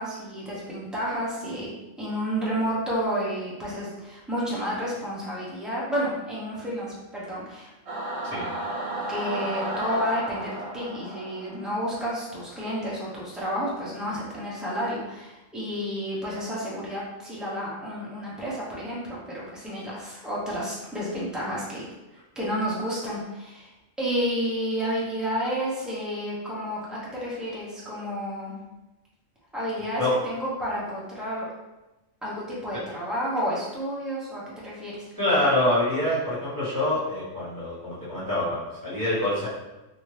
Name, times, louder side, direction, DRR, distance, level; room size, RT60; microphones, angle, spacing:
voice 1, 0.0-7.7 9.1-21.9 22.4-23.7 24.0-28.5 29.5-31.5 32.2-35.1, equal, ahead, -7 dB, 0.6 m, -31 dB
Singing / Musical instrument, 7.9-12.5, right 1 dB, 50° right, 0.4 m, -33 dB
voice 2, 35.2-39.5, left 1 dB, 15° right, -12 dB, 1.3 m, -25 dB
2.7 x 2.6 x 3.1 m, 1.0 s
omnidirectional pair, 1.3 m